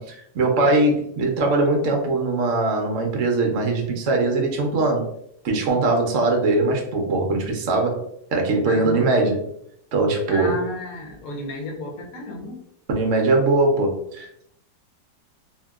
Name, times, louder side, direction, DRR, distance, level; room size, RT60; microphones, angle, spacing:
voice 1, 0.0-5.1 5.4-8.0 8.3-9.4 9.9-10.6 12.9-14.4, right 2 dB, 70° right, 1 dB, 0.7 m, -21 dB
voice 2, 8.6-9.1 10.3-12.6, left 2 dB, 65° left, 0 dB, 1.0 m, -33 dB
2.8 x 2.8 x 2.3 m, 0.71 s
omnidirectional pair, 1.9 m